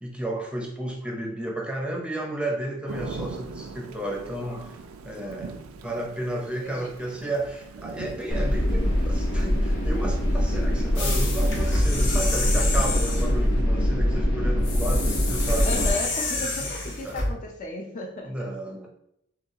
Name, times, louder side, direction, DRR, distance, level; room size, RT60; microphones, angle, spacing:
voice 1, 0.0-4.8 5.0-5.5 5.8-16.1 16.6-16.7 17.0-17.3 18.2-18.9, right 1 dB, 5° right, 0 dB, 0.6 m, -32 dB
Thunder / Rain, 2.9-12.8, right 4 dB, 85° right, 0.4 m, -42 dB
voice 2, 6.6-6.9 7.2-7.3 15.6-18.3, left 2 dB, 40° left, 2 dB, 0.5 m, -34 dB
sound 1, 8.3-15.9, equal, 85° left, 1.3 m, -23 dB
sound 2, 11.0-13.4 14.6-17.3, left 2 dB, 60° left, 1.0 m, -29 dB
6.5 x 2.3 x 2.8 m, 0.78 s
head